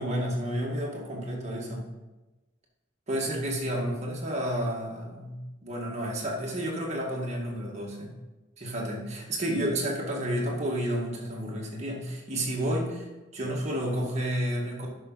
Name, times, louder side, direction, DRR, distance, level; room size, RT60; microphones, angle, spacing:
voice 1, 0.0-1.8 3.1-8.1 8.6-13.0 13.3-14.9, equal, 35° right, -2 dB, 1.9 m, -31 dB
11.0 x 6.0 x 4.1 m, 1.1 s
head